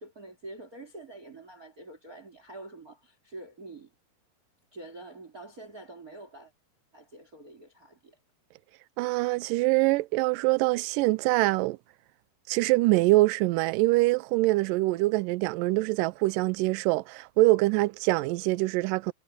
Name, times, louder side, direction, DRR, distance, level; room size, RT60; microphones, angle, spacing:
voice 1, 0.0-3.9 4.7-6.5 6.9-8.2, right 2 dB, 25° right, 2.9 m, -46 dB
voice 2, 9.0-11.8 12.5-19.1, right 21 dB, 85° right, 1.9 m, -24 dB
omnidirectional pair, 4.4 m